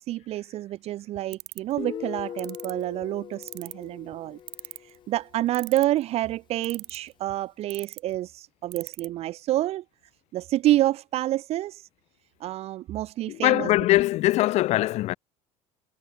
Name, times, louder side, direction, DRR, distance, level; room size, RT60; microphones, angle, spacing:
voice 1, 0.0-4.4 4.8-9.8 10.3-11.9 12.4-13.7, right 14 dB, 50° right, 1.1 m, -28 dB
sound 1, 1.3-1.7 2.4-2.7 3.4-3.8 4.5-5.0 5.5-6.0 6.6-7.1 7.7-8.0 8.7-9.1, right 24 dB, 70° right, 1.1 m, -37 dB
Guitar, 1.8-5.3, left 9 dB, 35° left, 4.7 m, -40 dB
voice 2, 13.3-15.1, left 16 dB, 55° left, 1.0 m, -22 dB
cardioid pair, 145°, 13 cm